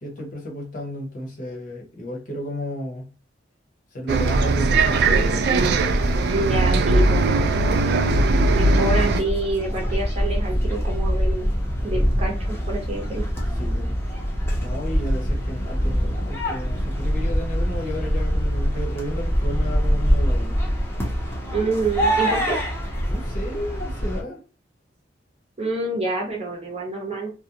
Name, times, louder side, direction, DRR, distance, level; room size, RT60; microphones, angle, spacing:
voice 1, 0.0-3.1 3.9-5.8 13.5-13.9 14.6-20.5 23.1-24.4, left 1 dB, 45° left, 0 dB, 0.8 m, -33 dB
Bus, 4.1-9.2, right 3 dB, 60° right, 0.3 m, -19 dB
sound 1, 5.9-24.2, equal, 15° left, 0.6 m, -24 dB
voice 2, 6.3-7.5 8.5-11.5 11.8-13.2 21.5-22.6 25.6-27.3, right 2 dB, 35° right, 0 dB, 0.7 m, -27 dB
2.4 x 2.1 x 2.8 m, 0.34 s
head